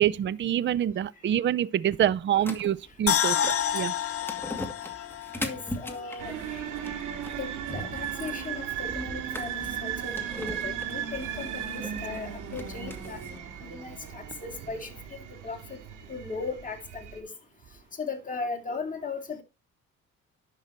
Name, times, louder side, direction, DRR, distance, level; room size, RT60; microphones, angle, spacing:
voice 1, 0.0-3.4 3.7-3.9, right 10 dB, 40° right, 0.5 m, -26 dB
sound 1, 2.4-13.4, left 1 dB, 5° left, 2.2 m, -41 dB
sound 2, 3.1-6.3 6.6-6.7, left 9 dB, 50° left, 0.7 m, -29 dB
voice 2, 5.4-7.0 7.4-13.2 13.6-15.2 15.4-15.8 16.1-17.3 18.0-19.4, left 4 dB, 25° left, 2.7 m, -37 dB
sound 3, 6.2-17.2, right 9 dB, 90° right, 2.2 m, -36 dB
10.5 x 6.4 x 4.3 m
cardioid pair, 90°, 30 cm